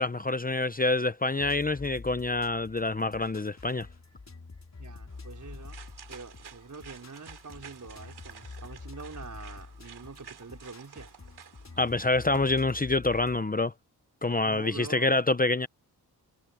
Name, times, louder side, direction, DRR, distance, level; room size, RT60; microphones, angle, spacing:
voice 1, 0.0-3.9 11.8-13.7 14.2-15.7, left 2 dB, 20° left, 0.9 m, -26 dB
sound 1, 1.4-13.4, left 4 dB, 45° left, 3.9 m, -47 dB
voice 2, 4.8-5.8 6.1-11.1 14.4-15.1, right 4 dB, 50° right, 4.7 m, -45 dB
sound 2, 5.1-12.7, right 7 dB, 90° right, 3.7 m, -51 dB
cardioid pair, 60°, 38 cm